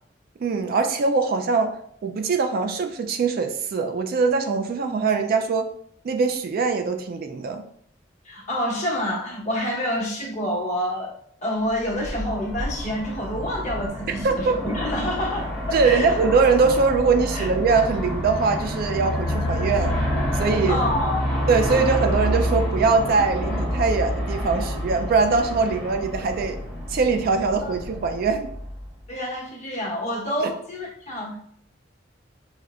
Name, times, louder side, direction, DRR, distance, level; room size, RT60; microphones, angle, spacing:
voice 1, 0.4-5.7 6.0-7.6 14.2-14.6 15.7-19.9 20.4-20.8 21.5-26.6 26.9-28.5 30.4-30.5, right 4 dB, 50° right, 6 dB, 0.3 m, -22 dB
voice 2, 8.2-11.1 11.4-14.5 14.7-16.1 17.3-17.5 20.6-21.3 29.1-31.4, left 1 dB, 40° left, -4 dB, 1.0 m, -28 dB
Aircraft, 11.8-29.1, equal, 10° left, 1.1 m, -28 dB
4.9 x 2.1 x 2.4 m, 0.65 s
head